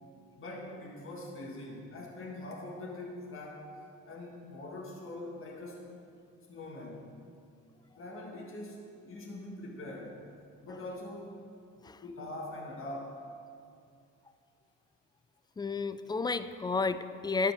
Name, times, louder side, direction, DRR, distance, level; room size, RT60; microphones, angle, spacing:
voice 1, 0.4-3.7 4.0-5.9 6.5-7.1 8.0-10.2 10.6-11.4 12.0-13.2, left 1 dB, 45° left, -2 dB, 1.6 m, -43 dB
voice 2, 15.6-17.5, left 4 dB, 15° left, 12 dB, 0.4 m, -32 dB
11.5 x 5.6 x 7.0 m, 2.4 s
cardioid pair, 90°, 30 cm